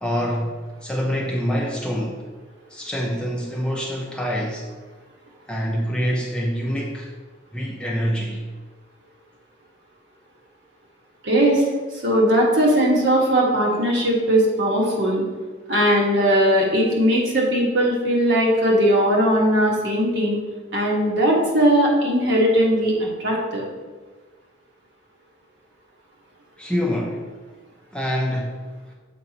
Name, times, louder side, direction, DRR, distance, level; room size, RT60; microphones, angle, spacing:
voice 1, 0.0-0.6 0.8-2.2 2.7-4.7 5.5-7.1 7.5-8.4 26.6-27.3 27.9-28.6, equal, 5° left, -2 dB, 0.5 m, -25 dB
voice 2, 11.2-11.6 12.0-15.2 15.7-20.4 20.7-23.6, equal, 65° right, -3 dB, 1.5 m, -19 dB
7.5 x 5.5 x 2.9 m, 1.3 s
head